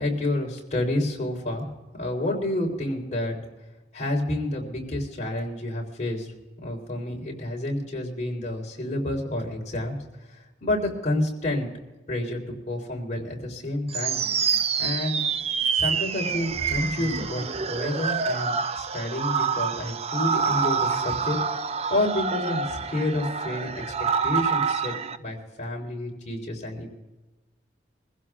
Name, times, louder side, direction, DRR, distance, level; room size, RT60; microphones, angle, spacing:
voice 1, 0.0-1.7 2.0-3.4 3.9-6.3 6.6-10.0 10.6-11.7 12.1-14.2 14.8-15.2 15.7-21.4 21.7-23.8 24.2-26.9, left 1 dB, 40° left, -1 dB, 3.7 m, -29 dB
sound 1, 13.9-25.2, right 6 dB, 35° right, 0.5 m, -27 dB
24.5 x 15.5 x 2.4 m, 1.1 s
head